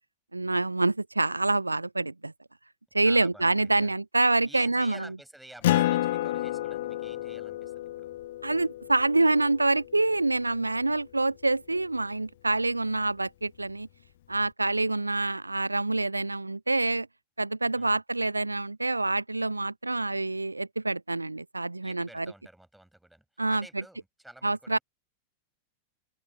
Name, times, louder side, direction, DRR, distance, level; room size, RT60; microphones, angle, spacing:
voice 1, 0.3-2.3 2.9-5.1 8.4-13.9 14.3-17.1 17.4-22.3 23.4-23.8 24.4-24.8, right 2 dB, 85° right, 0.3 m, -26 dB
voice 2, 3.0-3.5 3.8-3.9 4.4-8.1 17.8-18.0 21.8-23.2 23.5-24.8, right 1 dB, 5° right, 6.1 m, -50 dB
Acoustic guitar, 5.6-10.6, left 14 dB, 55° left, 0.5 m, -30 dB
open air
figure-of-eight pair, 90°, 0 cm